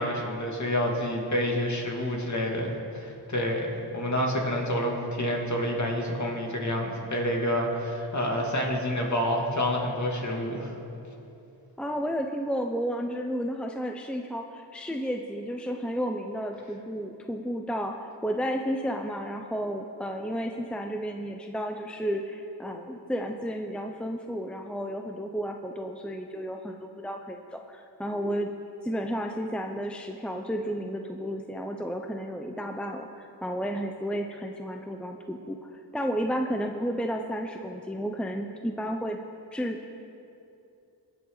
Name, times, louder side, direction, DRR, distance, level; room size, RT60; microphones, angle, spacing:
voice 1, 0.0-10.7, equal, 40° left, -1 dB, 2.6 m, -28 dB
voice 2, 11.8-28.5 28.8-35.6 35.9-39.2 39.5-39.9, equal, ahead, 3 dB, 0.7 m, -32 dB
21.0 x 8.7 x 4.0 m, 2.7 s
cardioid pair, 60°, 42 cm